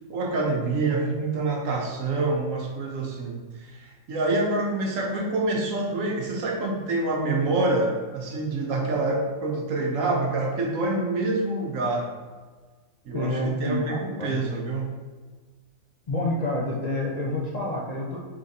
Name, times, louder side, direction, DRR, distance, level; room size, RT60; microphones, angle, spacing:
voice 1, 0.1-12.1 13.1-14.9, right 2 dB, 70° right, 0 dB, 1.1 m, -26 dB
voice 2, 13.1-14.4 16.1-18.2, left 1 dB, 60° left, -4 dB, 0.4 m, -28 dB
3.7 x 3.3 x 4.0 m, 1.4 s
omnidirectional pair, 1.5 m